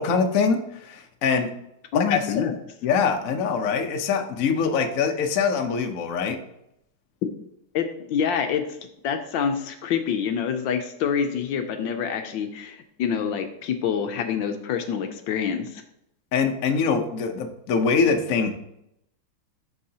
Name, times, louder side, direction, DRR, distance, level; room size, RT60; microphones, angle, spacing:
voice 1, 0.0-1.5 1.9-2.4 2.8-6.4 16.3-18.5, left 5 dB, 55° left, 5 dB, 1.0 m, -23 dB
voice 2, 1.9-2.5 7.7-8.6 9.0-15.7, left 7 dB, 75° left, 6 dB, 1.3 m, -26 dB
11.5 x 4.8 x 2.8 m, 0.79 s
omnidirectional pair, 2.2 m